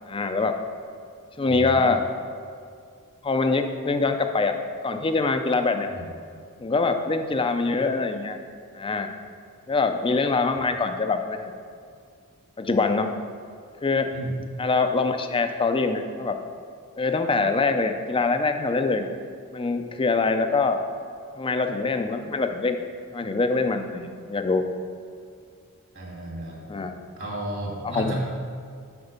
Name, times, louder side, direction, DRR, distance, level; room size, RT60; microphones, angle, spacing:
voice 1, 0.1-0.5 1.4-2.0 3.2-4.6 4.8-5.9 6.6-8.4 8.7-9.1 9.7-11.5 12.6-13.1 13.8-14.1 14.6-16.4 17.0-19.1 19.5-20.8 21.4-22.8 23.1-24.6 26.7-26.9 27.8-28.2, left 3 dB, 25° left, 7 dB, 0.5 m, -24 dB
voice 2, 1.5-1.9 5.9-6.1 14.1-14.3 25.9-26.7 27.2-28.2, right 1 dB, 60° right, -2 dB, 2.2 m, -33 dB
8.0 x 5.9 x 5.2 m, 2.3 s
head